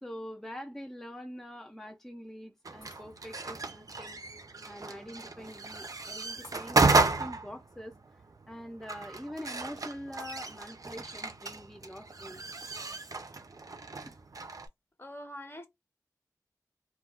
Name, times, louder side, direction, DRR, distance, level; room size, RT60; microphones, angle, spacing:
voice 1, 0.0-4.2 4.6-12.4 14.1-14.2, equal, 5° left, 0.4 m, -44 dB
sound 1, 2.6-14.7, right 3 dB, 60° right, 0.4 m, -33 dB
Shatter, 2.8-3.5 4.1-4.2 6.4-7.2 10.2-10.9, left 2 dB, 75° left, 1.1 m, -55 dB
voice 2, 15.0-15.7, left 1 dB, 35° left, 0.7 m, -43 dB
2.3 x 2.1 x 3.3 m
wide cardioid pair, 55°, 7 cm